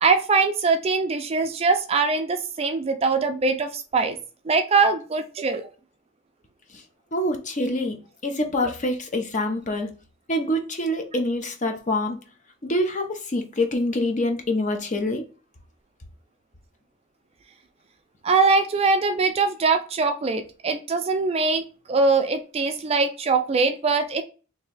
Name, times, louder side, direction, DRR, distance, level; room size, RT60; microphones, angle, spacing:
voice 1, 0.0-4.2 4.5-5.7 18.2-21.6 21.9-24.2, right 4 dB, 30° right, 7 dB, 0.3 m, -22 dB
voice 2, 7.1-8.0 8.2-9.9 10.3-12.2 12.6-15.2, left 1 dB, 40° left, 4 dB, 0.6 m, -25 dB
3.1 x 2.7 x 3.9 m, 0.35 s
head